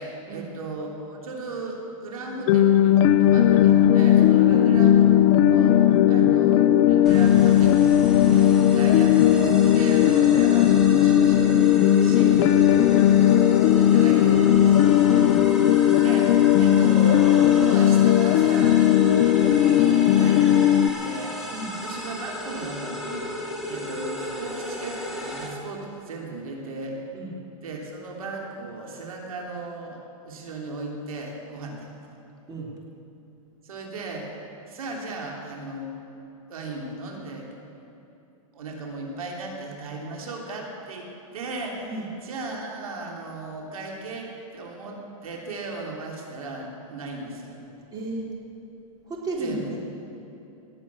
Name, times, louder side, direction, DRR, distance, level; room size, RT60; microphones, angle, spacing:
voice 1, 0.0-13.0 13.8-14.9 16.0-18.8 19.2-21.5 21.8-23.3 23.6-27.0 27.6-32.2 33.6-34.3 34.7-35.9 36.5-37.5 38.5-41.1 41.3-47.6 49.4-49.8, right 2 dB, 85° right, 0 dB, 3.1 m, -36 dB
sound 1, 2.5-20.9, left 11 dB, 40° left, 0.6 m, -17 dB
sound 2, 7.0-25.5, equal, ahead, 2.4 m, -35 dB
voice 2, 47.9-48.3 49.0-49.8, right 2 dB, 20° right, -3 dB, 3.4 m, -33 dB
19.0 x 8.4 x 8.4 m, 2.8 s
hypercardioid pair, 140°, 18 cm